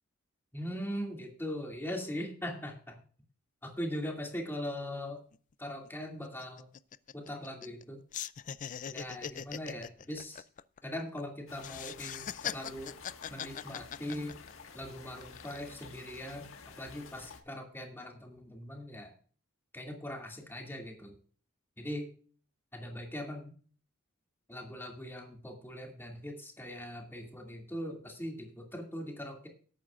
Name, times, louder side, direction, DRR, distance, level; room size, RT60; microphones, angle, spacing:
voice 1, 0.5-3.0 3.6-5.2 5.6-6.7 7.1-8.0 8.9-10.4 10.8-13.0 13.3-14.4 14.7-16.5 16.8-19.1 19.7-21.2 21.8-22.1 22.7-23.5 24.5-29.5, equal, 10° left, 1 dB, 2.4 m, -40 dB
sound 1, 5.3-5.4 5.7-5.9 6.2-7.8 8.1-11.2 11.6-14.7 15.2-15.7, left 9 dB, 40° left, 0.4 m, -41 dB
sound 2, 11.5-17.4, left 5 dB, 70° left, 1.6 m, -51 dB
18.5 x 9.0 x 2.5 m, 0.43 s
head